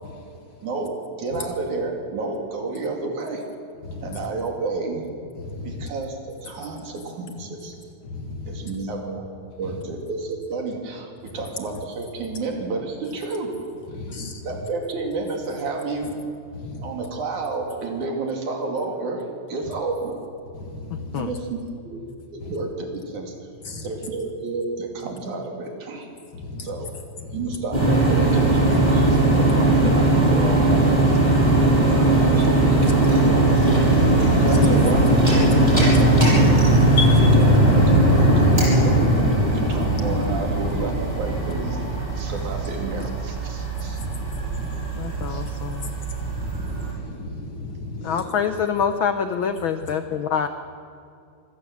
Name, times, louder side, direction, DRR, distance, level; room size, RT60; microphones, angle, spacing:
voice 1, 0.6-3.4 4.0-5.0 5.6-7.7 8.5-9.3 9.6-13.7 14.4-16.2 16.8-20.2 21.1-21.6 21.8-22.0 22.3-23.4 23.8-26.1 26.6-26.9 27.3-31.2 31.8-33.6 34.3-35.0 35.3-36.7 37.1-39.0 39.4-40.9 41.2-41.8 42.2-44.0 45.3-45.4, right 3 dB, 90° right, 2 dB, 4.1 m, -30 dB
voice 2, 5.4-5.9 8.0-8.7 11.4-11.5 13.9-14.4 16.6-16.9 20.5-21.2 22.4-22.5 23.7-23.9 26.3-26.7 27.2-27.4 31.5-31.9 34.6-34.8 37.0-37.3 43.9-45.3 45.8-48.3, left 2 dB, 45° left, 4 dB, 2.4 m, -32 dB
voice 3, 20.9-21.3 45.0-46.0 48.0-50.5, left 7 dB, 80° left, 9 dB, 1.1 m, -26 dB
sound 1, 27.7-46.9, right 1 dB, 15° right, 7.2 m, -19 dB
25.0 x 16.5 x 7.5 m, 2.5 s
omnidirectional pair, 3.3 m